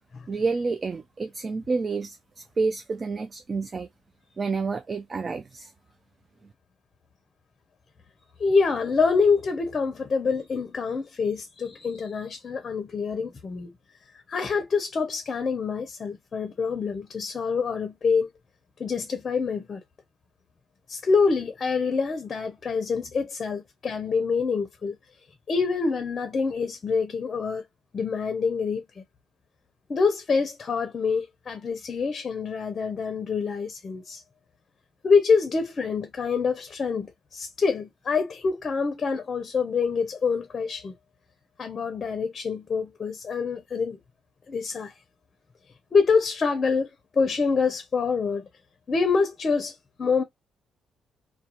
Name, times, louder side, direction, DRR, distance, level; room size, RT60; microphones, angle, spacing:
voice 1, 0.3-3.9 4.4-5.7, right 4 dB, 35° right, 0.3 m, -29 dB
voice 2, 8.4-13.7 14.3-18.3 18.8-19.8 20.9-25.0 25.5-27.6 27.9-29.0 29.9-34.2 35.0-40.9 41.6-44.0 44.5-44.9 45.9-46.9 47.1-48.5 48.9-50.2, left 5 dB, 40° left, 0.5 m, -26 dB
2.3 x 2.1 x 2.8 m
cardioid pair, 90°, 0 cm